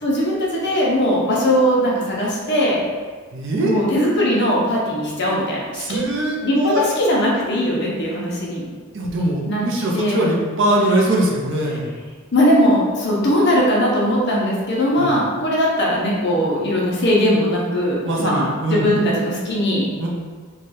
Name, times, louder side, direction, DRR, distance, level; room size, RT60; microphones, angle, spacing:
voice 1, 0.0-2.8 3.6-6.0 6.4-8.6 9.5-9.7 9.9-10.3 12.3-19.9, equal, 55° left, -4 dB, 0.8 m, -19 dB
voice 2, 3.3-3.7 5.8-6.8 8.9-11.9 14.9-15.1 18.0-18.9 20.0-20.1, right 1 dB, 60° right, -2 dB, 0.6 m, -21 dB
3.3 x 2.3 x 4.1 m, 1.5 s
head